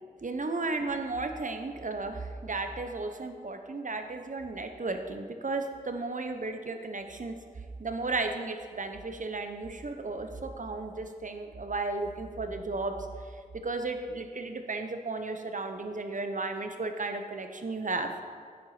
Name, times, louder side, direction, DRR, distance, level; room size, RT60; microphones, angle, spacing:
voice 1, 0.2-7.4 7.8-12.9 13.6-18.1, right 3 dB, 60° right, 6 dB, 0.9 m, -34 dB
9.0 x 7.9 x 4.9 m, 2.1 s
wide cardioid pair, 70°, 15 cm